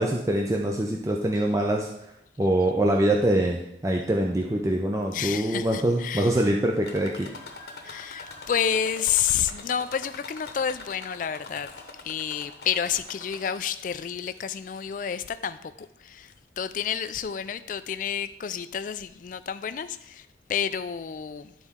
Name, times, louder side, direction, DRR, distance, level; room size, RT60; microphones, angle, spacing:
voice 1, 0.0-1.9 2.4-7.3, right 1 dB, 15° right, 0.5 m, -24 dB
voice 2, 5.1-6.5 7.8-21.5, left 8 dB, 45° left, 0.3 m, -30 dB
sound 1, 6.8-13.9 14.4-15.0 15.8-15.9 16.3-16.4, left 3 dB, 65° left, 0.9 m, -44 dB
11.5 x 4.1 x 3.6 m
head